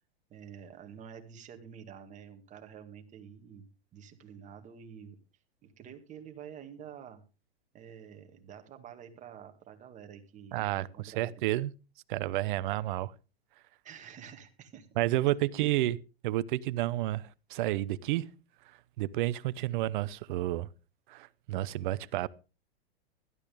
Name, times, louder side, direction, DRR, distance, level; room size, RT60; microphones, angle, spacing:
voice 1, 0.3-3.7 3.9-5.2 5.6-7.2 7.7-11.4 13.8-14.9, right 8 dB, 25° right, 2.1 m, -48 dB
voice 2, 10.5-11.7 12.1-13.1 15.0-16.0 16.2-18.3 19.0-20.7 21.1-22.3, right 15 dB, 50° right, 0.8 m, -30 dB
16.0 x 12.5 x 3.5 m
hypercardioid pair, 135°, 31 cm